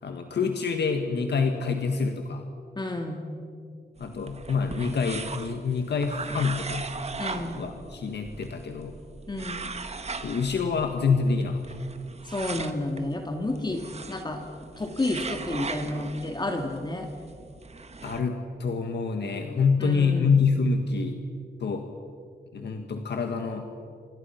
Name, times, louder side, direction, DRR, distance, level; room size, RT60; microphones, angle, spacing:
voice 1, 0.0-2.4 4.0-6.9 7.5-8.9 10.2-11.6 18.0-21.2 21.6-21.8 22.5-23.7, left 5 dB, 80° left, 5 dB, 1.7 m, -26 dB
voice 2, 2.8-3.3 7.2-7.6 9.3-9.6 12.2-14.4 14.8-17.1 19.8-20.4, left 2 dB, 25° left, 3 dB, 2.1 m, -31 dB
sound 1, 4.0-18.2, right 4 dB, 40° right, 1.5 m, -39 dB
28.0 x 26.5 x 5.8 m, 2.4 s
wide cardioid pair, 130°, 17 cm